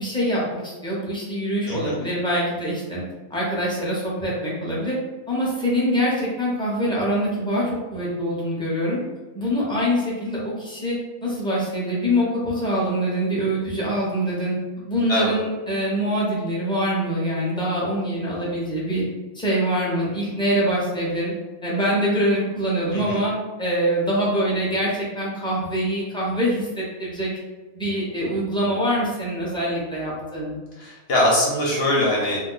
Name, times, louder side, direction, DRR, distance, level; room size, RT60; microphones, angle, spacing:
voice 1, 0.0-3.0 3.3-5.0 5.3-9.0 9.3-14.5 14.9-19.0 19.3-21.3 21.6-23.3 23.6-27.3 27.7-30.6, equal, 5° left, -6 dB, 0.4 m, -24 dB
voice 2, 30.8-32.4, left 1 dB, 55° left, -4 dB, 0.8 m, -22 dB
2.6 x 2.1 x 3.8 m, 1.3 s
omnidirectional pair, 1.5 m